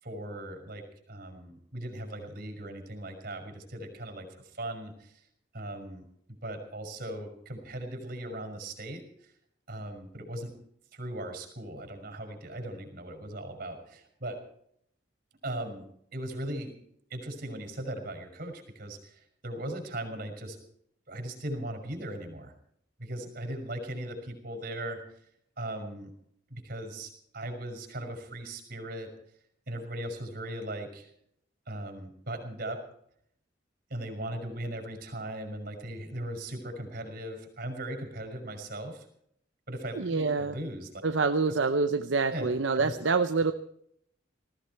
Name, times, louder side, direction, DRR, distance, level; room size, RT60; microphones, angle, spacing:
voice 1, 0.0-5.2 5.5-6.1 6.4-9.0 9.7-10.5 10.9-14.4 15.4-15.8 16.1-16.7 17.1-20.6 21.1-22.5 23.0-25.0 25.6-26.1 26.5-29.1 29.7-31.1 31.7-32.8 33.9-39.1 39.7-40.9 42.3-42.5 42.7-43.0, right 1 dB, 50° right, 5 dB, 5.9 m, -38 dB
voice 2, 39.9-40.6 41.0-43.5, right 4 dB, 75° right, 8 dB, 0.8 m, -26 dB
19.5 x 15.5 x 4.6 m, 0.70 s
head